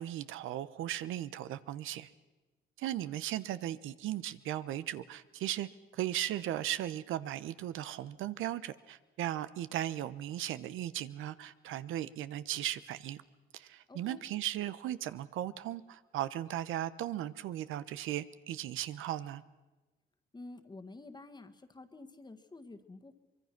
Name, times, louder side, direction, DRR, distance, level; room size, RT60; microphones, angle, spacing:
voice 1, 0.0-2.1 2.8-5.7 5.9-13.2 13.5-19.4, right 12 dB, 85° right, 14 dB, 0.9 m, -37 dB
voice 2, 13.9-14.2 20.3-23.1, left 2 dB, 20° left, 8 dB, 1.6 m, -50 dB
24.0 x 22.0 x 5.9 m, 1.2 s
cardioid pair, 90°, 20 cm